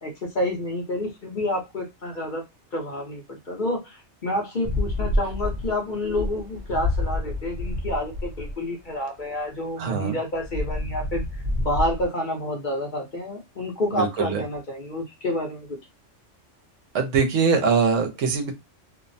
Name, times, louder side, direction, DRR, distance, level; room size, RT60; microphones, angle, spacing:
voice 1, 0.0-2.4 2.7-15.8, left 1 dB, 45° left, 1 dB, 0.7 m, -29 dB
sound 1, 4.6-8.5 10.3-12.0, left 2 dB, 40° right, 0.7 m, -28 dB
voice 2, 9.8-10.2 13.9-14.4 16.9-18.5, right 5 dB, 80° right, 4 dB, 1.0 m, -22 dB
2.7 x 2.0 x 2.5 m, 0.21 s
omnidirectional pair, 1.3 m